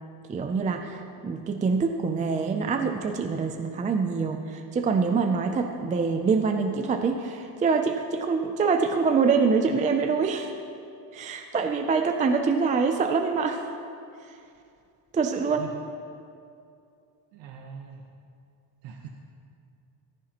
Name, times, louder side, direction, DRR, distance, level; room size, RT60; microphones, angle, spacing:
voice 1, 0.3-10.5 11.1-13.6 15.1-15.6, right 5 dB, 20° right, 5 dB, 0.4 m, -25 dB
voice 2, 15.4-15.8 17.3-18.0 18.8-19.1, right 8 dB, 85° right, 1 dB, 1.0 m, -42 dB
14.5 x 14.5 x 2.9 m, 2.5 s
cardioid pair, 155°, 42 cm